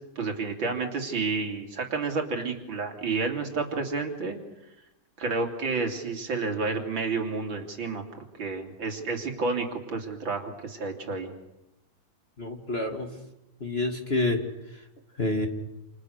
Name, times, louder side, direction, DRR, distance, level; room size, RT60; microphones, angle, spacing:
voice 1, 0.2-4.4 5.2-8.0 8.4-11.3, right 4 dB, 60° right, 4 dB, 3.7 m, -30 dB
voice 2, 12.4-13.1 13.6-14.4 15.2-15.5, left 2 dB, 30° left, 5 dB, 2.2 m, -27 dB
29.0 x 28.5 x 6.6 m, 0.91 s
omnidirectional pair, 2.4 m